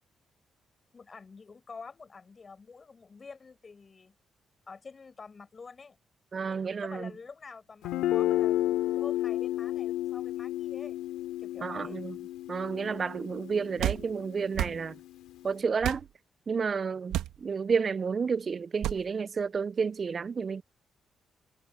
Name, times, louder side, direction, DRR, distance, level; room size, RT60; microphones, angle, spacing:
voice 1, 0.9-4.2 4.7-6.0 6.4-11.0 11.4-12.0, left 4 dB, 40° left, 8.0 m, -48 dB
voice 2, 6.3-7.1 11.6-12.2 12.5-14.9 15.4-16.1 16.5-20.6, right 5 dB, 45° right, 0.4 m, -31 dB
Guitar, 7.8-15.5, left 14 dB, 90° left, 2.3 m, -32 dB
sound 1, 13.8-14.0 14.5-14.8 15.8-16.1 17.1-17.4 18.8-19.0, right 13 dB, 85° right, 1.7 m, -30 dB
supercardioid pair, 60°, 0 cm